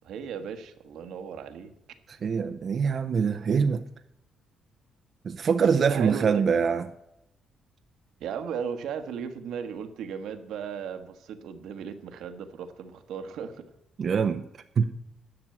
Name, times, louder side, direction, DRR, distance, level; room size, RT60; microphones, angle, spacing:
voice 1, 0.0-1.7 5.9-6.5 8.2-13.6, right 7 dB, 80° right, 7 dB, 1.2 m, -36 dB
voice 2, 2.2-3.8 5.2-6.9 14.0-14.4 14.8-14.9, right 6 dB, 50° right, 7 dB, 0.6 m, -24 dB
11.0 x 6.2 x 8.3 m, 0.81 s
cardioid pair, 90°, 0 cm